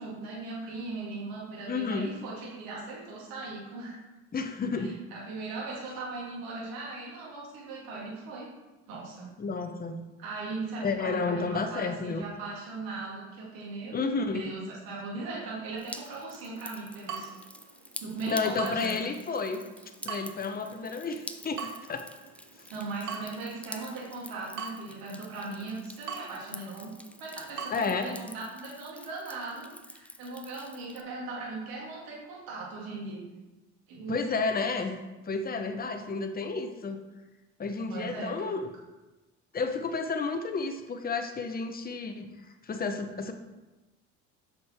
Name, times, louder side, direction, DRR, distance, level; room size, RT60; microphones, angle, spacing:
voice 1, 0.0-4.0 4.7-8.5 8.9-9.3 10.2-17.3 18.0-18.9 22.7-26.9 27.2-33.2 33.9-34.2 37.9-38.6, right 3 dB, 75° right, -5 dB, 2.5 m, -39 dB
voice 2, 1.7-2.1 4.3-5.0 9.4-10.0 10.8-12.2 13.9-14.5 18.3-19.6 20.0-22.1 27.7-28.2 34.1-35.0 35.3-37.0 37.6-38.7 39.5-42.3 42.6-43.3, left 4 dB, 25° left, 6 dB, 0.8 m, -31 dB
Drip, 15.8-31.0, left 1 dB, 5° left, 0.4 m, -48 dB
Water tap faucet / Drip, 17.0-27.7, right 6 dB, 55° right, 1.0 m, -44 dB
6.5 x 5.3 x 4.3 m, 1.1 s
supercardioid pair, 75°, 35 cm